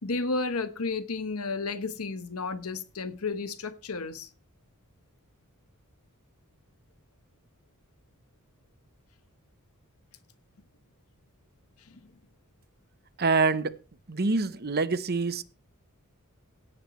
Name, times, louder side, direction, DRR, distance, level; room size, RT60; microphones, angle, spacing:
voice 1, 0.0-4.3 11.9-12.0, left 3 dB, 75° left, 1.2 m, -32 dB
voice 2, 13.2-13.7 14.1-15.4, right 3 dB, 45° right, 0.9 m, -25 dB
17.0 x 10.5 x 3.1 m
head